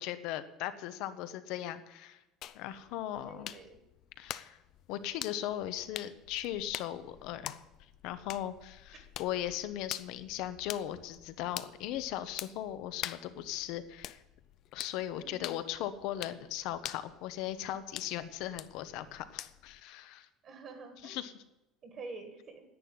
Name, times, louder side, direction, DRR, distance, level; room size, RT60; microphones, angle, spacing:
voice 1, 0.0-2.2 2.5-3.5 4.2-4.6 4.9-7.5 8.0-14.2 14.7-20.3 21.0-21.3, left 12 dB, 55° left, 12 dB, 1.0 m, -38 dB
sound 1, 2.4-19.8, left 12 dB, 40° left, 0.5 m, -46 dB
voice 2, 3.2-3.8 8.9-9.0 15.2-15.4 20.4-21.2 21.8-22.6, right 3 dB, 30° right, 5 dB, 1.7 m, -47 dB
10.5 x 8.9 x 9.6 m, 0.95 s
cardioid pair, 180°, 0 cm